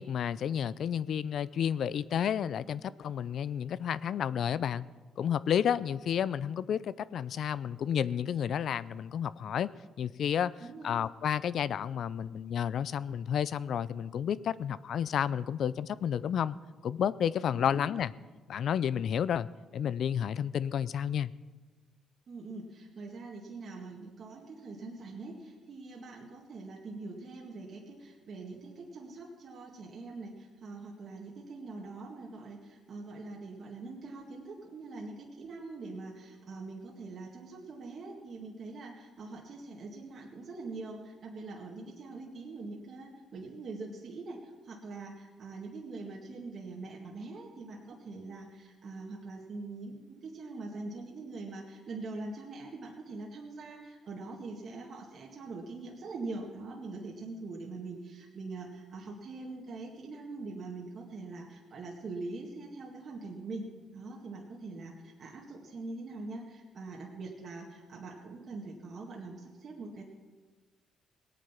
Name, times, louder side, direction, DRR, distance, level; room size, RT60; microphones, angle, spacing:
voice 1, 0.0-4.8 5.2-9.7 10.0-10.5 10.8-16.6 16.8-18.1 18.5-19.5 19.7-21.3, left 8 dB, 65° left, 18 dB, 0.4 m, -31 dB
voice 2, 10.6-11.0 17.5-17.8 22.3-70.0, right 3 dB, 55° right, -2 dB, 2.0 m, -43 dB
18.5 x 9.2 x 5.8 m, 1.3 s
cardioid pair, 90°, 0 cm